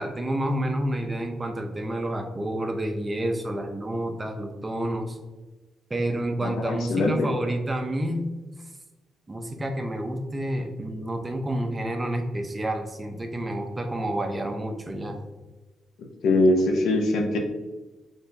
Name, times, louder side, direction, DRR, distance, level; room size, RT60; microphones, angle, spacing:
voice 1, 0.0-5.2 5.9-8.3 9.3-15.2, right 1 dB, 20° right, 4 dB, 0.6 m, -29 dB
voice 2, 6.4-7.3 16.2-17.4, left 2 dB, 85° left, 2 dB, 0.6 m, -22 dB
4.2 x 3.4 x 2.6 m, 1.2 s
cardioid pair, 100°, 0 cm